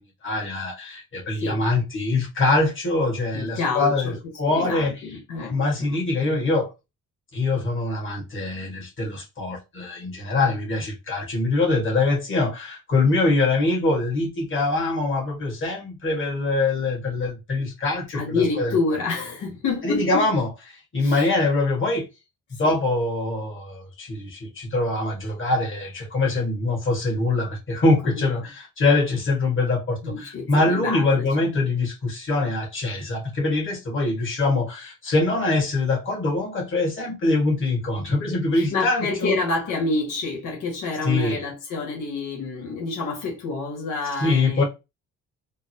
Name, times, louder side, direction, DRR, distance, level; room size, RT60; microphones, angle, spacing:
voice 1, 0.2-5.0 5.4-6.7 7.3-18.8 19.8-22.1 22.6-39.3 41.0-41.4 44.2-44.6, left 2 dB, 40° left, 1.7 m, -23 dB
voice 2, 3.3-4.1 4.5-6.4 18.1-20.3 21.0-21.3 22.6-22.7 28.1-28.2 30.0-31.5 38.5-44.6, left 3 dB, 85° left, 1.3 m, -28 dB
3.7 x 2.1 x 2.8 m
cardioid pair, 90°, 30 cm